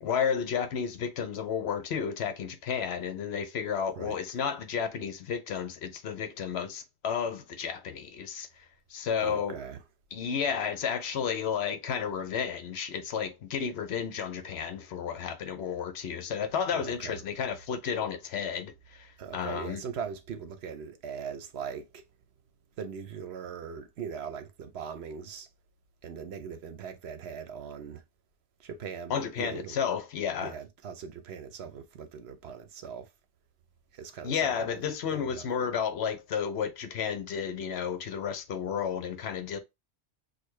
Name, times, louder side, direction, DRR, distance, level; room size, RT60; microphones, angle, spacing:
voice 1, 0.0-8.5 8.9-9.6 10.1-19.8 29.1-30.5 34.2-39.6, left 7 dB, 65° left, 0.9 m, -32 dB
voice 2, 9.2-9.8 16.7-17.2 19.2-22.0 22.8-25.5 26.0-28.0 28.6-29.8 30.4-33.1 33.9-34.8 35.1-35.5, right 7 dB, 65° right, 0.9 m, -40 dB
6.4 x 2.3 x 3.1 m
omnidirectional pair, 1.2 m